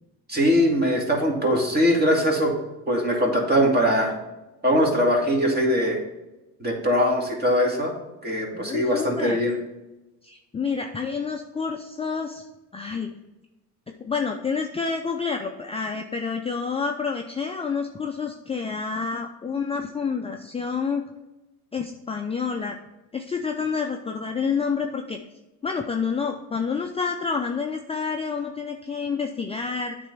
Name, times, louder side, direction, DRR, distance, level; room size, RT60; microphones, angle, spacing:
voice 1, 0.3-2.5 2.9-4.2 4.6-6.0 6.6-7.9 8.2-9.6, equal, 25° right, 0 dB, 2.1 m, -21 dB
voice 2, 8.5-9.4 10.2-12.4 12.7-13.1 14.0-21.0 21.7-22.8 23.1-25.2 25.6-30.0, left 5 dB, 15° left, 3 dB, 0.5 m, -28 dB
8.6 x 3.4 x 5.4 m, 1.0 s
supercardioid pair, 90°, 38 cm